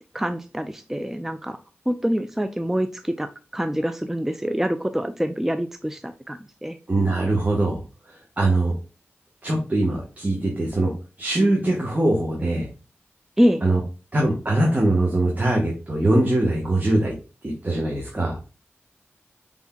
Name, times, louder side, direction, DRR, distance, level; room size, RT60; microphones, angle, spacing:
voice 1, 0.1-1.6 1.9-6.8 13.4-13.6, equal, 10° right, 9 dB, 0.4 m, -25 dB
voice 2, 6.9-7.8 8.1-8.7 9.4-10.9 11.2-12.7 13.6-13.8 14.1-17.1 17.4-18.4, right 2 dB, 40° right, -1 dB, 1.2 m, -22 dB
5.5 x 3.5 x 2.3 m, 0.34 s
cardioid pair, 40°, 5 cm